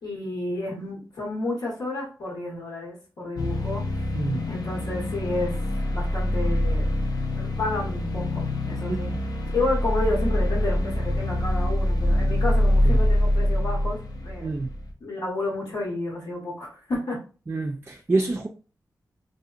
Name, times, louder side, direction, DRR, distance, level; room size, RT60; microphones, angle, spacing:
voice 1, 0.0-4.0 4.5-5.6 5.9-6.9 7.3-9.1 9.5-14.5 15.0-17.2, left 2 dB, 85° left, -5 dB, 1.0 m, -31 dB
sound 1, 3.4-14.9, left 1 dB, 65° left, 0.5 m, -25 dB
voice 2, 4.1-4.5 8.9-9.2 12.9-13.0 14.4-14.7 17.5-18.5, right 3 dB, 30° right, 2 dB, 0.4 m, -27 dB
2.7 x 2.1 x 2.4 m, 0.35 s
cardioid pair, 60°, 7 cm